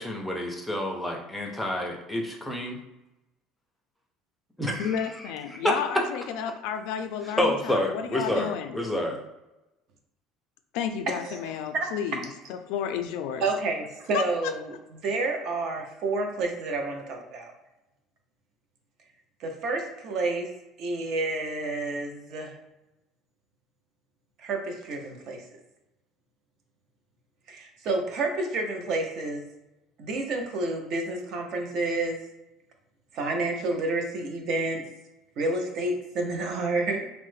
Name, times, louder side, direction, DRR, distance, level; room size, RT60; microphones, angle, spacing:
voice 1, 0.0-2.8 4.6-4.9 7.4-9.2, left 1 dB, ahead, 0 dB, 0.5 m, -29 dB
voice 2, 4.8-8.8 10.7-13.4 14.1-14.5, left 8 dB, 75° left, 7 dB, 0.3 m, -32 dB
voice 3, 13.4-14.7 15.0-17.5 19.4-20.5 20.8-22.5 24.4-25.4 27.5-29.4 30.0-32.2 33.1-34.8 35.4-37.1, right 2 dB, 50° right, 3 dB, 0.6 m, -29 dB
3.1 x 2.0 x 3.2 m, 0.98 s
cardioid pair, 150°, 0 cm